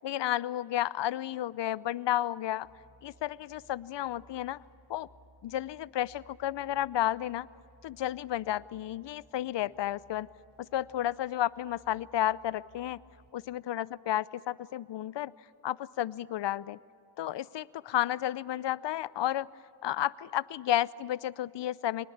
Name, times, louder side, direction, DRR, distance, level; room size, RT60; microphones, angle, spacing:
voice 1, 0.0-2.7 3.0-4.6 4.9-5.1 5.4-7.5 7.8-10.3 10.7-13.0 13.3-15.3 15.6-16.8 17.2-19.5 19.8-22.1, left 12 dB, 65° left, 19 dB, 0.7 m, -32 dB
sound 1, 2.6-13.3, right 1 dB, 60° right, 3.8 m, -62 dB
24.5 x 20.0 x 8.7 m, 2.5 s
cardioid pair, 60°, 46 cm